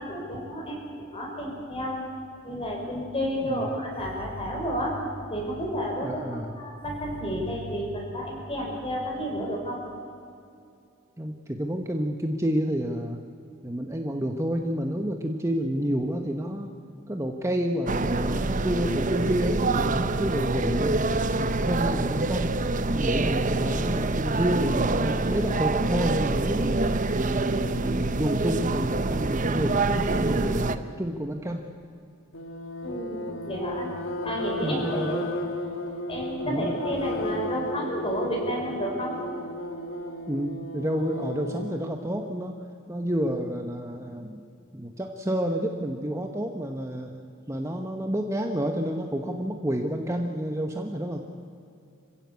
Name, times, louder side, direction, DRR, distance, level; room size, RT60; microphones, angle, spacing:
voice 1, 0.0-2.0 2.4-6.2 6.6-9.8 32.8-33.9 34.2-35.2 36.1-39.2, equal, 25° left, 0 dB, 5.5 m, -31 dB
voice 2, 6.0-6.6 11.2-13.2 13.6-16.7 17.1-21.0 21.4-22.5 22.9-26.8 27.1-31.6 34.6-35.3 36.4-36.7 40.3-42.6 42.9-44.4 44.7-47.1 47.5-51.3, equal, 15° right, 3 dB, 1.1 m, -29 dB
sound 1, 17.9-30.8, right 2 dB, 40° right, 0.8 m, -26 dB
sound 2, 32.3-42.0, left 1 dB, 70° left, 1.8 m, -34 dB
26.0 x 16.0 x 8.4 m, 2.5 s
head